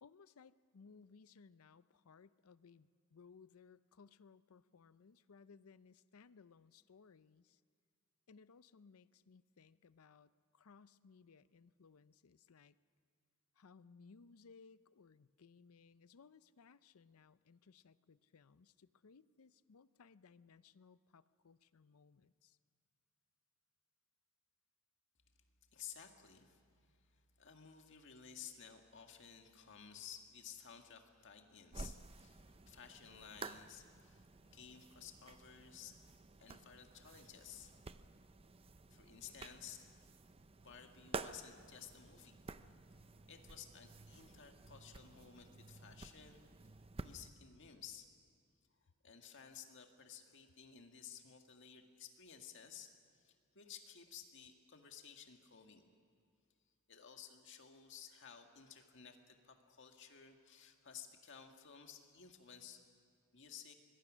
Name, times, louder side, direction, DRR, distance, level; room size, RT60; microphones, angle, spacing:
voice 1, 0.0-7.6 8.3-12.8 13.5-22.6, left 5 dB, 80° left, 16 dB, 0.6 m, -63 dB
voice 2, 25.7-36.0 36.4-37.7 38.9-39.9 40.6-42.4 43.3-46.4 47.0-48.1 49.0-55.9 56.9-62.8 63.3-63.7, left 8 dB, 60° left, 4 dB, 1.8 m, -55 dB
sound 1, 31.7-47.3, right 3 dB, 25° right, 0.6 m, -52 dB
25.0 x 21.5 x 6.3 m, 2.2 s
head